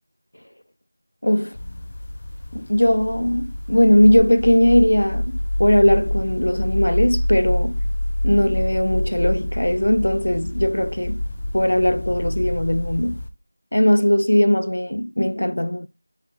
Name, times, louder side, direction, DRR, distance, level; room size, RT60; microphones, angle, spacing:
voice 1, 1.2-1.6 2.5-7.8 8.2-11.2 11.5-13.2 13.7-15.9, equal, 90° left, 0.5 m, -19 dB
sound 1, 1.5-13.3, left 1 dB, 30° left, 0.5 m, -26 dB
5.9 x 4.9 x 4.2 m
figure-of-eight pair, 180°, 0 cm